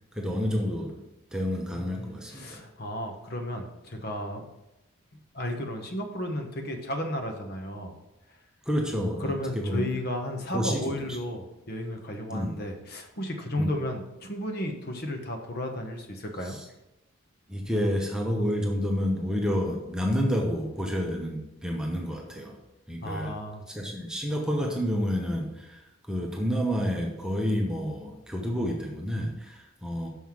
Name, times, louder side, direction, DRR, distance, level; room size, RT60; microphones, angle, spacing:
voice 1, 0.1-1.0 1.3-2.7 8.7-9.9 10.5-11.2 12.3-12.6 13.6-13.7 16.4-16.6 17.5-22.6 22.9-23.4 23.7-25.8 26.1-30.1, equal, 5° right, 0 dB, 0.9 m, -29 dB
voice 2, 1.7-4.5 5.3-7.9 9.2-16.6 23.0-23.6, left 1 dB, 50° left, 4 dB, 1.1 m, -33 dB
6.3 x 5.5 x 5.9 m, 0.98 s
head